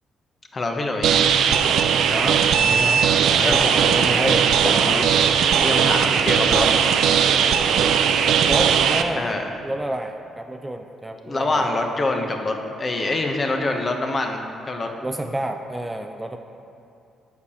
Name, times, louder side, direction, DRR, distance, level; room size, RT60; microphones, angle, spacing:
voice 1, 0.5-1.2 3.4-4.4 4.6-6.7 9.2-9.5 11.2-14.9, left 2 dB, 35° left, 4 dB, 1.0 m, -26 dB
sound 1, 1.0-9.0, right 7 dB, 75° right, 0.5 m, -18 dB
voice 2, 2.1-3.0 3.3-4.5 8.4-9.3 9.6-11.7 15.0-16.4, right 1 dB, 10° right, 5 dB, 0.4 m, -29 dB
8.1 x 5.0 x 6.9 m, 2.7 s
cardioid pair, 90°, 0 cm